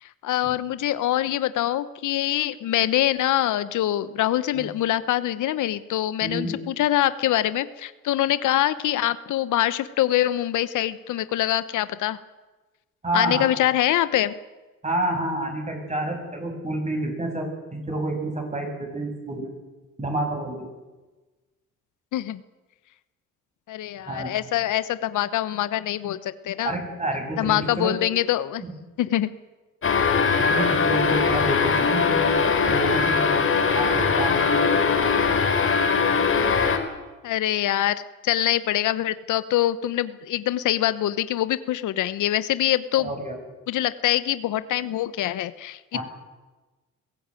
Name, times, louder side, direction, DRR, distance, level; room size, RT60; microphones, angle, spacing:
voice 1, 0.0-12.2 13.1-14.3 22.1-22.4 23.7-26.8 27.4-28.6 29.0-29.3 37.2-43.1 43.7-46.0, left 13 dB, 80° left, 14 dB, 1.1 m, -24 dB
voice 2, 6.2-6.6 13.0-13.5 14.8-19.5 20.0-20.7 24.1-24.3 26.6-28.0 28.6-28.7 30.4-32.3 32.6-35.1 43.0-43.4 45.9-46.0, right 1 dB, 25° right, 2 dB, 7.7 m, -29 dB
sound 1, 29.8-36.8, left 5 dB, 45° left, 3.9 m, -21 dB
22.0 x 16.0 x 9.1 m, 1.2 s
cardioid pair, 90°, 30 cm